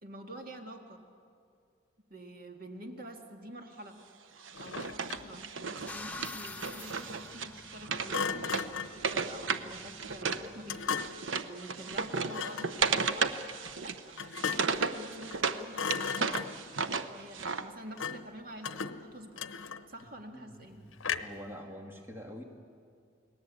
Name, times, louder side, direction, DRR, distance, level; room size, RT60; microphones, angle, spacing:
voice 1, 0.0-1.0 2.1-4.1 4.6-11.0 11.4-13.4 13.7-16.2 16.7-19.5 19.9-20.8, right 1 dB, 45° right, 4 dB, 2.0 m, -48 dB
Wood, 4.4-10.5 10.7-15.6 15.9-17.6, right 5 dB, 75° right, 1.0 m, -34 dB
Thump thud, 4.5-5.4 8.1-9.0 10.7-11.3 12.3-12.8 14.2-14.8 15.2-15.5 15.7-16.7 18.0-18.3 18.6-20.0 21.0-21.5, left 6 dB, 80° left, 0.8 m, -36 dB
sound 1, 5.9-11.1, left 2 dB, 10° left, 0.8 m, -48 dB
voice 2, 20.3-22.4, equal, 10° right, 2 dB, 1.9 m, -46 dB
29.0 x 19.0 x 8.5 m, 2.3 s
head